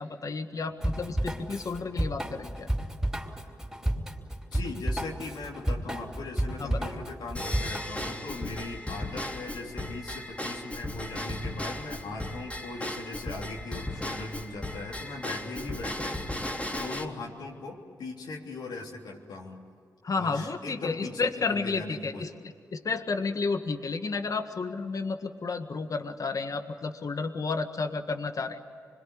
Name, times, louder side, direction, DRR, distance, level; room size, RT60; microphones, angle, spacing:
voice 1, 0.0-2.7 6.6-6.9 20.0-22.3 22.7-28.6, left 4 dB, 55° left, 7 dB, 1.7 m, -31 dB
Drum kit / Drum, 0.8-8.1, right 1 dB, 5° right, 4.6 m, -31 dB
voice 2, 4.5-16.2 16.7-19.6 20.2-22.3, left 3 dB, 85° left, -2 dB, 3.4 m, -39 dB
Drum kit / Drum / Bell, 7.3-17.0, left 1 dB, 15° left, 3.3 m, -36 dB
26.0 x 22.0 x 9.9 m, 2.4 s
supercardioid pair, 45°, 7 cm